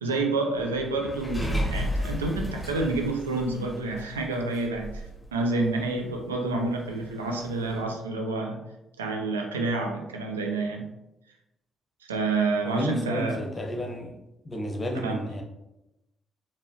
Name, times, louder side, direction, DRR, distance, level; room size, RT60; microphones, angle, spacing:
voice 1, 0.0-5.0 5.3-8.6 9.0-10.9 12.1-13.4 15.0-15.2, right 3 dB, 90° right, 2 dB, 0.4 m, -28 dB
sound 1, 0.5-5.2 5.6-5.7 5.9-6.2 6.5-6.6 7.5-7.8, equal, 10° left, 1.2 m, -33 dB
voice 2, 12.6-14.2 14.4-15.4, equal, 35° left, 3 dB, 0.8 m, -32 dB
4.3 x 2.9 x 2.7 m, 0.94 s
hypercardioid pair, 40°, 0 cm